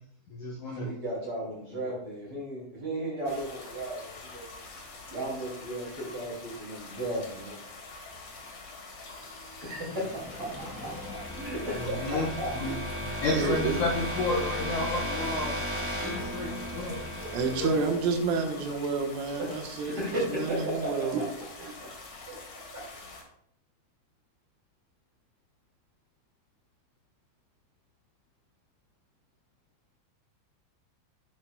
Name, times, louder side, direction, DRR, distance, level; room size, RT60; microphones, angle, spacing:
voice 1, 0.3-0.9 11.7-12.7 13.0-15.6 16.0-17.7, left 2 dB, 80° left, -4 dB, 1.7 m, -32 dB
voice 2, 0.8-4.4 5.1-7.6 9.6-12.5 19.4-21.1 21.8-21.9 22.3-22.4, right 1 dB, 35° right, -4 dB, 2.9 m, -35 dB
sound 1, 3.2-23.2, left 3 dB, 55° left, 1.8 m, -46 dB
sound 2, 9.2-19.0, equal, 5° right, 0.9 m, -36 dB
voice 3, 13.3-13.8 17.2-20.0 20.3-21.3, right 4 dB, 85° right, 3 dB, 3.8 m, -29 dB
10.5 x 10.5 x 2.3 m, 0.70 s
omnidirectional pair, 5.5 m